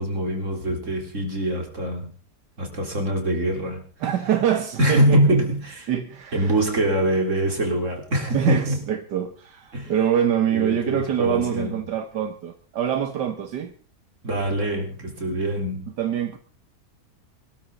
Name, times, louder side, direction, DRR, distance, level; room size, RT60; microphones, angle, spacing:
voice 1, 0.0-2.1 2.6-3.8 4.8-5.9 6.3-8.8 9.7-9.9 10.5-11.8 14.2-15.9, right 1 dB, 45° right, 2 dB, 4.3 m, -24 dB
voice 2, 4.0-5.4 5.9-6.6 8.3-13.7 16.0-16.4, right 9 dB, 80° right, 7 dB, 1.7 m, -25 dB
23.5 x 13.0 x 3.9 m, 0.38 s
omnidirectional pair, 1.8 m